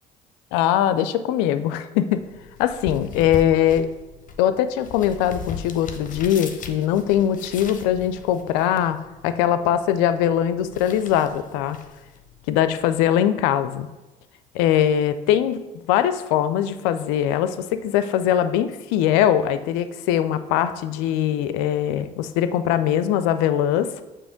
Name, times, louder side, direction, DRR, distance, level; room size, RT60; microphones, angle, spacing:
voice 1, 0.5-2.2 2.6-3.9 4.4-9.0 9.2-11.8 12.5-13.9 14.5-15.6 15.9-23.9, left 10 dB, 75° left, 12 dB, 0.4 m, -21 dB
sound 1, 2.1-13.1, left 5 dB, 40° left, 0.7 m, -40 dB
7.0 x 2.9 x 5.0 m, 1.1 s
hypercardioid pair, 55°, 20 cm